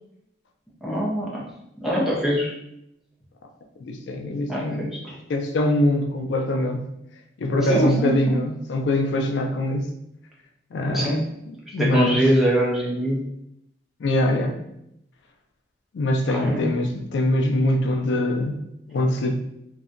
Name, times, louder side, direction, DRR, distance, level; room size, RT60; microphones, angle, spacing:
voice 1, 0.8-1.4 1.8-2.5 4.5-5.2 7.7-8.4 10.9-11.2 11.8-13.2 16.3-16.7, right 1 dB, ahead, -5 dB, 0.4 m, -23 dB
voice 2, 3.8-4.9 5.3-6.9 7.4-9.9 10.7-11.2 11.7-12.2 14.0-14.6 15.9-18.6 18.9-19.4, left 1 dB, 70° left, 2 dB, 0.3 m, -23 dB
2.6 x 2.1 x 2.4 m, 0.79 s
head